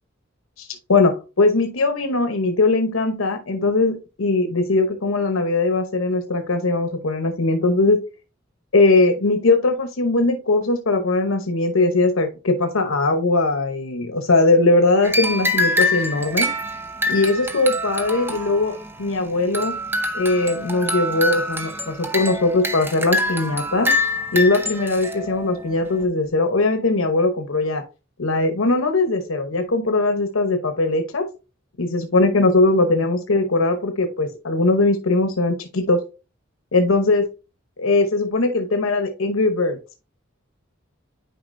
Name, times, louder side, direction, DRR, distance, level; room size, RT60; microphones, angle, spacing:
voice 1, 0.6-8.0 8.7-16.5 17.1-18.7 19.0-19.7 20.1-23.9 24.3-27.8 28.2-31.3 31.8-36.0 36.7-37.3 37.8-39.8, left 2 dB, 85° left, 6 dB, 0.9 m, -20 dB
sound 1, 15.0-26.0, left 1 dB, 10° right, 0.8 m, -25 dB
9.4 x 4.8 x 2.6 m, 0.30 s
head